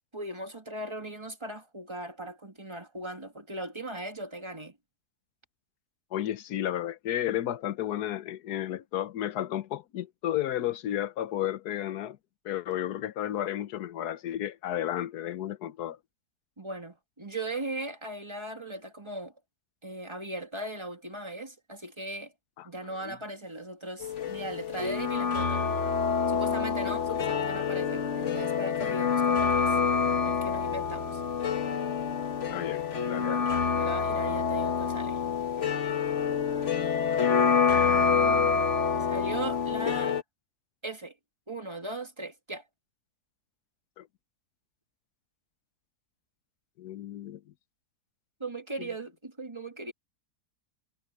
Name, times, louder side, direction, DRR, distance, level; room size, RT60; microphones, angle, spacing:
voice 1, 0.1-4.8 16.6-19.3 19.8-22.3 22.6-25.6 26.3-29.8 30.2-31.2 33.2-35.2 37.8-38.7 39.0-40.1 40.8-41.1 41.5-42.6 48.4-49.9, right 2 dB, 15° right, 2.2 m, -38 dB
voice 2, 6.1-12.2 12.4-16.0 22.6-22.7 23.0-23.2 26.8-27.2 29.3-29.4 32.5-33.5 44.0-44.1 46.8-47.4 48.8-48.9, left 12 dB, 80° left, 1.4 m, -33 dB
sound 1, 24.0-40.2, left 6 dB, 50° left, 1.6 m, -27 dB
omnidirectional pair, 1.7 m